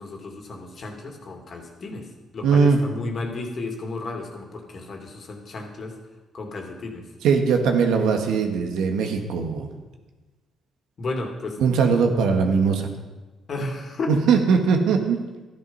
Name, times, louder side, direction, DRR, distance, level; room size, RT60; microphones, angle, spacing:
voice 1, 0.0-2.1 2.3-5.9 6.3-7.0 11.0-11.6 13.5-14.1, left 3 dB, 50° left, 2 dB, 2.5 m, -33 dB
voice 2, 2.4-2.8 7.2-9.7 11.6-12.8 14.1-15.2, right 5 dB, 85° right, 4 dB, 1.6 m, -20 dB
13.0 x 11.0 x 5.6 m, 1.2 s
cardioid pair, 90°, 0 cm